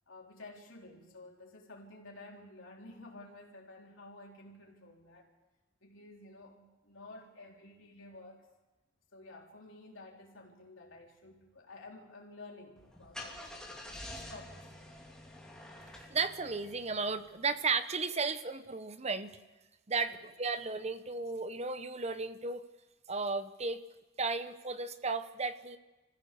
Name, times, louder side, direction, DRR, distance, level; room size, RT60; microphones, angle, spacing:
voice 1, 0.1-5.3 5.8-8.5 9.1-14.7 20.1-20.3, left 2 dB, 90° left, -1 dB, 4.0 m, -52 dB
Car / Engine starting, 12.8-17.4, left 1 dB, 5° left, 2.8 m, -48 dB
voice 2, 16.1-19.4 19.9-22.6 23.1-23.8 24.2-25.8, right 4 dB, 35° right, 11 dB, 0.9 m, -34 dB
27.0 x 15.5 x 6.9 m, 1.1 s
head